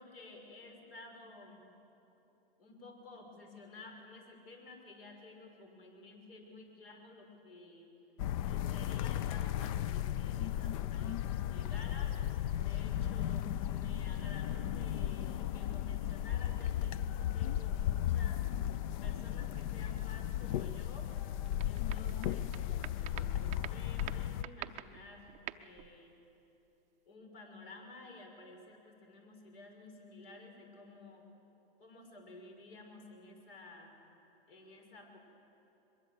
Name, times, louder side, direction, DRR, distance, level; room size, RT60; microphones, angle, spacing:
voice 1, 0.0-1.6 2.6-7.9 8.4-12.2 12.6-18.5 19.0-21.1 21.6-26.2 27.1-31.3 31.8-33.9 34.5-35.2, left 3 dB, 75° left, 3 dB, 5.9 m, -53 dB
sound 1, 8.2-24.4, left 11 dB, 35° left, 0.4 m, -35 dB
sound 2, 21.4-22.6 22.8-26.0, right 16 dB, 25° right, 0.6 m, -45 dB
22.5 x 22.0 x 8.1 m, 3.0 s
hypercardioid pair, 135°, 30 cm